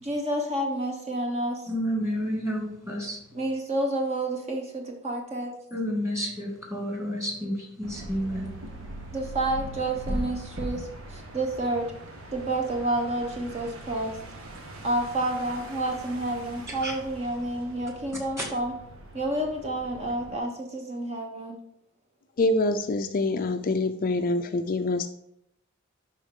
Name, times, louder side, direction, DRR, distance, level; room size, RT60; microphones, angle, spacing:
voice 1, 0.0-1.6 3.3-5.5 9.1-11.9 12.3-14.2 14.8-18.7 19.1-21.6, right 1 dB, 30° right, 1 dB, 0.9 m, -29 dB
voice 2, 1.7-3.2 5.7-8.5 16.8-16.9 18.4-18.5, equal, 15° right, 0 dB, 2.1 m, -30 dB
sound 1, 7.8-20.4, right 1 dB, 75° right, 1.5 m, -40 dB
voice 3, 22.4-25.1, left 2 dB, 40° left, 7 dB, 0.5 m, -25 dB
11.0 x 4.0 x 3.7 m, 0.77 s
head